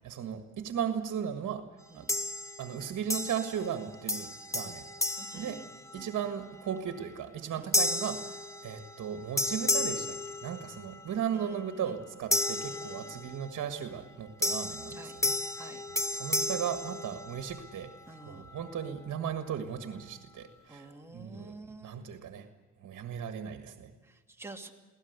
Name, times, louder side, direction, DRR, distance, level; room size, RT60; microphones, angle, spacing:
voice 1, 0.0-1.7 1.9-2.1 2.6-4.9 5.3-5.6 5.9-17.9 18.3-21.5 21.8-22.5 22.8-23.9, right 8 dB, 65° right, 8 dB, 1.7 m, -36 dB
sound 1, 2.1-2.7 3.1-3.8 4.1-6.2 6.8-7.0 7.7-9.1 9.4-11.0 12.3-13.5 14.4-17.7, left 2 dB, 10° left, 1.3 m, -33 dB
voice 2, 5.2-6.1 7.5-7.7 11.3-11.9 12.7-13.2 14.9-15.2 15.6-15.8 18.1-18.5 20.7-22.0 24.0-24.7, right 2 dB, 10° right, 2 dB, 2.6 m, -49 dB
23.5 x 17.5 x 8.1 m, 1.4 s
cardioid pair, 90°, 30 cm